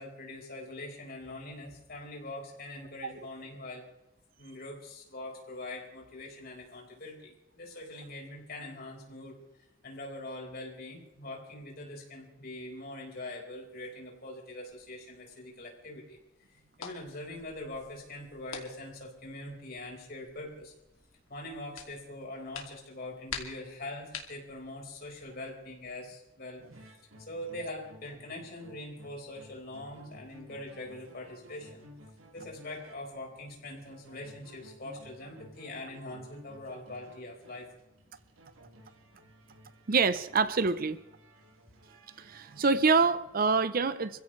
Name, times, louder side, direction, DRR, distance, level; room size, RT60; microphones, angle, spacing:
voice 1, 0.0-3.8 4.4-9.4 9.8-16.2 16.5-20.7 21.3-31.9 32.3-37.7, left 1 dB, 50° left, 0 dB, 4.8 m, -43 dB
sound 1, 14.7-25.9, left 6 dB, 90° left, 2.5 m, -49 dB
sound 2, 26.6-42.9, equal, 80° right, 1.9 m, -56 dB
voice 2, 39.9-41.0 42.2-44.2, right 4 dB, 45° right, 13 dB, 0.6 m, -26 dB
27.0 x 16.0 x 3.2 m, 0.90 s
head